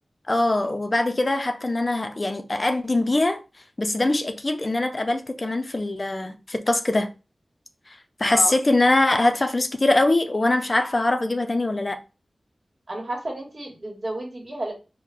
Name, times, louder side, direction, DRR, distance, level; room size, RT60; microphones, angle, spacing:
voice 1, 0.3-3.4 3.8-7.1 7.9-12.0, left 2 dB, 45° left, 0.5 m, -22 dB
voice 2, 8.2-8.5 12.9-14.7, right 1 dB, 55° right, 1.4 m, -31 dB
3.9 x 2.1 x 3.3 m
cardioid pair, 45°, 0 cm